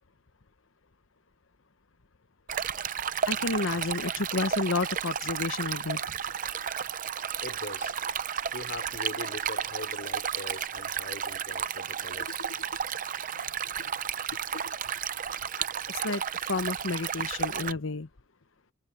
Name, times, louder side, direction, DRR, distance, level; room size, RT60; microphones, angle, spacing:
Stream, 2.5-17.7, right 8 dB, 40° right, 0.6 m, -33 dB
voice 1, 3.3-6.2 12.4-12.5 13.8-13.9 14.5-14.7 15.6-16.2 16.5-18.1, left 3 dB, 75° left, 1.0 m, -31 dB
voice 2, 7.4-7.9 8.5-12.4, left 2 dB, 50° left, 5.3 m, -41 dB
head